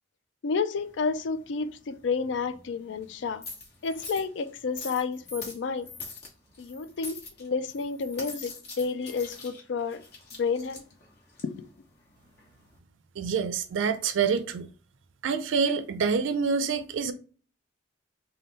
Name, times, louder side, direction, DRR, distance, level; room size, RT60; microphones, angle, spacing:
voice 1, 0.4-3.4 3.8-5.9 6.6-10.0 10.4-10.8 11.4-11.7, left 5 dB, 70° left, 0.4 m, -30 dB
sound 1, 0.7-12.8, left 3 dB, 55° left, 1.3 m, -45 dB
voice 2, 13.2-14.7 15.2-17.1, right 5 dB, 85° right, 0.4 m, -26 dB
3.5 x 2.2 x 3.9 m
head